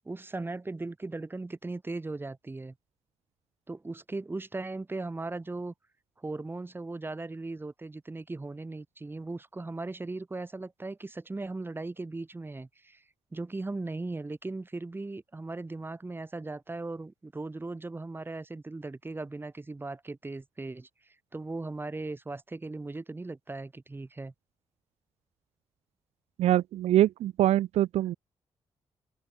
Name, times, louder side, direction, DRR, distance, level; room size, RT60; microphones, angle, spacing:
voice 1, 0.0-2.7 3.7-5.7 6.2-13.0 13.3-20.9 21.3-24.3, right 2 dB, 20° right, 1.7 m, -38 dB
voice 2, 26.4-28.1, right 13 dB, 85° right, 0.4 m, -24 dB
cardioid pair, 95°, 11 cm